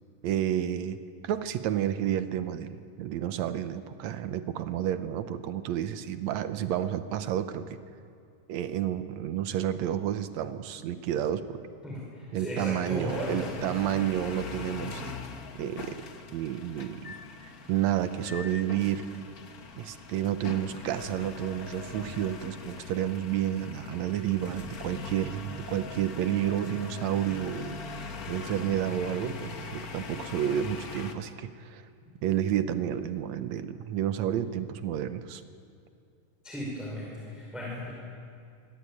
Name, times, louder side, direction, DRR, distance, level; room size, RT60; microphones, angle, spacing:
voice 1, 0.2-1.0 1.2-7.8 8.5-11.6 12.3-15.1 15.6-15.9 16.3-17.2 17.7-19.0 19.8-27.8 28.3-31.8 32.2-35.4, right 10 dB, 70° right, 10 dB, 1.9 m, -30 dB
voice 2, 11.8-13.8 36.4-37.9, left 1 dB, ahead, -4 dB, 4.8 m, -36 dB
sound 1, 13.1-31.1, left 4 dB, 75° left, 0.8 m, -41 dB
26.0 x 18.0 x 8.7 m, 2.4 s
omnidirectional pair, 3.8 m